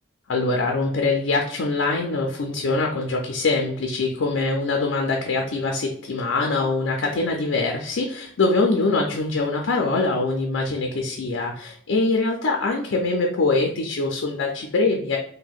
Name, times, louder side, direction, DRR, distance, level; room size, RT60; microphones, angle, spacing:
voice 1, 0.3-15.2, left 3 dB, 75° left, 1 dB, 0.5 m, -23 dB
2.7 x 2.1 x 4.0 m, 0.63 s
head